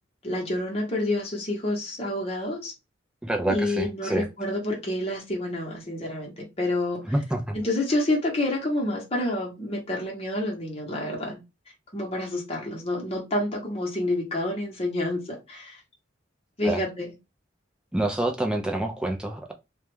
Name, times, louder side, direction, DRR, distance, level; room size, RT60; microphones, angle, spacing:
voice 1, 0.2-2.7 3.5-7.0 7.5-11.4 11.9-15.8 16.6-17.1, left 1 dB, 30° left, 0.8 m, -28 dB
voice 2, 3.2-4.3 7.1-7.6 16.6-16.8 17.9-19.5, right 1 dB, 5° right, 0.3 m, -27 dB
2.3 x 2.1 x 3.0 m
head